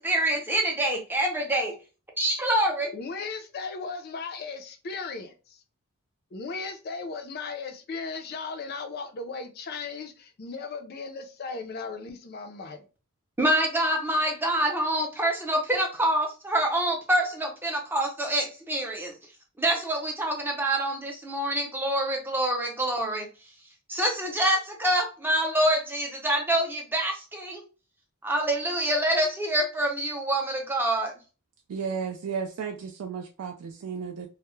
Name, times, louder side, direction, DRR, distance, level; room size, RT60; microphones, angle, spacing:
voice 1, 0.0-1.7 2.2-2.9 13.4-19.1 19.6-23.3 23.9-27.6 28.2-31.1, right 1 dB, 10° right, 0.5 m, -26 dB
voice 2, 2.9-5.6 6.3-12.9, left 4 dB, 45° left, 0.4 m, -36 dB
voice 3, 31.7-34.3, right 6 dB, 80° right, 0.3 m, -33 dB
2.2 x 2.0 x 3.0 m
head